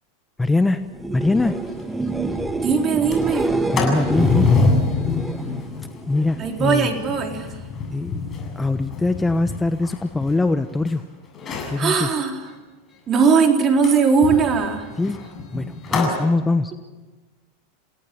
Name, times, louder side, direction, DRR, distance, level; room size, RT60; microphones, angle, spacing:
voice 1, 0.4-0.8 1.1-1.6 3.7-4.5 6.1-6.9 7.9-8.1 8.5-11.0 11.7-12.1 15.0-15.2 15.5-16.8, left 2 dB, 10° left, 9 dB, 1.1 m, -22 dB
sound 1, 0.9-6.7 7.0-7.6 14.6-14.7, right 2 dB, 10° right, 1.5 m, -28 dB
Sliding door, 1.4-1.5 1.8-1.9 2.2-2.5 2.9-10.9 11.3-11.8 13.8-16.2, left 4 dB, 30° left, 7.7 m, -26 dB
voice 2, 2.6-3.6 6.4-7.5 11.8-12.4 13.1-14.9, right 5 dB, 35° right, 3 dB, 4.0 m, -19 dB
28.5 x 18.0 x 7.0 m, 1.2 s
hypercardioid pair, 100°, 0 cm